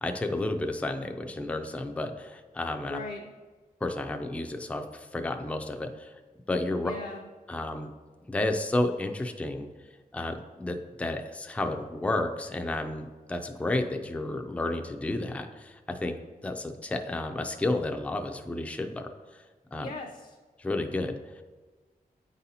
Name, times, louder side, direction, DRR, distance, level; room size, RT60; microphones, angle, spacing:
voice 1, 0.0-3.0 3.8-6.1 6.5-6.9 7.5-7.9 8.3-9.7 10.1-16.2 16.4-19.4 19.7-19.9 20.6-21.4, left 2 dB, 10° left, 5 dB, 0.4 m, -31 dB
voice 2, 2.9-3.2 6.8-7.3 19.8-20.4, left 2 dB, 60° left, 1 dB, 0.5 m, -38 dB
8.7 x 4.0 x 2.7 m, 1.4 s
wide cardioid pair, 105°, 16 cm